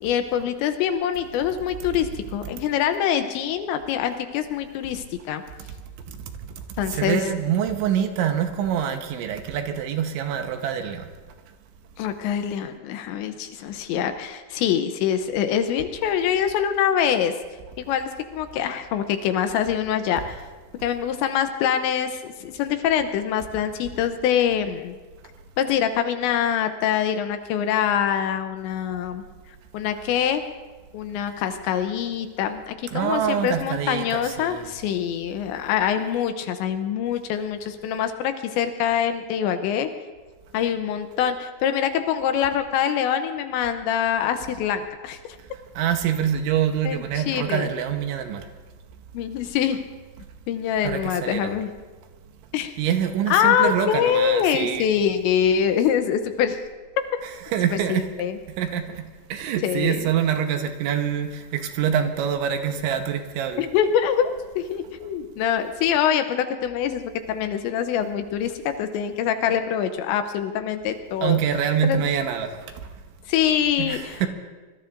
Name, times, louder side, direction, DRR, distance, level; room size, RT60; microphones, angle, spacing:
voice 1, 0.0-5.4 6.8-7.3 12.0-17.3 17.8-20.4 20.8-25.0 25.6-29.2 29.7-30.4 30.9-39.9 40.5-45.2 46.8-47.7 49.1-49.8 50.5-51.7 52.5-52.7 53.3-56.6 57.7-58.4 59.6-60.1 63.6-64.3 64.6-71.4 71.8-72.0 73.3-74.2, left 9 dB, 80° left, 8 dB, 2.8 m, -24 dB
voice 2, 6.9-11.1 32.9-34.7 45.8-48.5 50.8-51.5 52.8-54.9 57.5-58.1 58.6-59.0 59.3-63.6 71.2-72.6 73.8-74.3, right 8 dB, 80° right, 6 dB, 3.2 m, -25 dB
25.5 x 21.5 x 2.6 m, 1.3 s
omnidirectional pair, 5.6 m